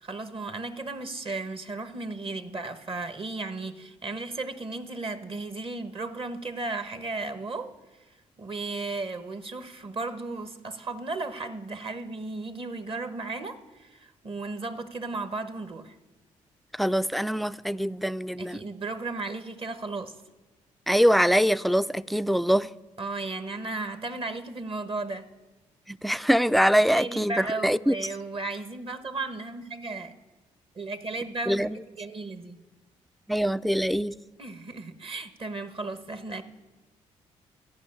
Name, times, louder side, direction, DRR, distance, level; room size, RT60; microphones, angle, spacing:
voice 1, 0.0-7.7 8.4-15.9 18.4-20.1 23.0-25.3 26.9-30.1 30.8-32.6 34.4-36.4, right 3 dB, 40° right, 1.2 m, -35 dB
voice 2, 16.8-18.6 20.9-22.7 25.9-27.9 31.5-31.8 33.3-34.2, equal, ahead, 0.3 m, -23 dB
13.5 x 5.7 x 8.7 m
supercardioid pair, 60°, 14 cm